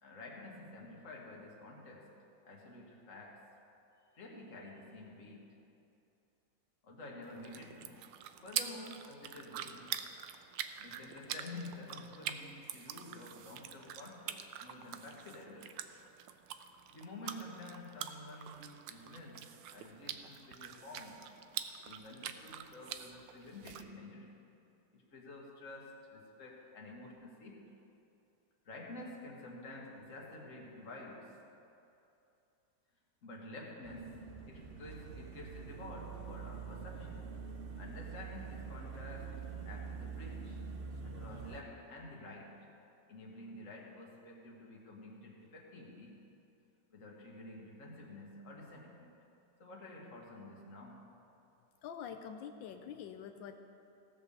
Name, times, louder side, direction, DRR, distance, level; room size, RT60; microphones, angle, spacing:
voice 1, 0.0-2.1 2.4-3.4 4.1-5.6 6.8-8.0 8.4-10.1 10.8-15.8 16.9-21.3 21.8-24.4 24.9-27.8 28.7-31.4 33.2-37.4 37.8-40.6 41.0-42.7 43.1-46.2 46.9-49.2 49.6-51.1, left 2 dB, 45° left, -2 dB, 1.9 m, -50 dB
sound 1, 7.2-23.8, right 10 dB, 85° right, 1.3 m, -45 dB
sound 2, 33.8-41.6, right 5 dB, 45° right, 0.8 m, -45 dB
voice 2, 51.8-53.6, left 8 dB, 90° left, 6 dB, 1.4 m, -45 dB
16.5 x 5.6 x 6.8 m, 2.8 s
omnidirectional pair, 2.0 m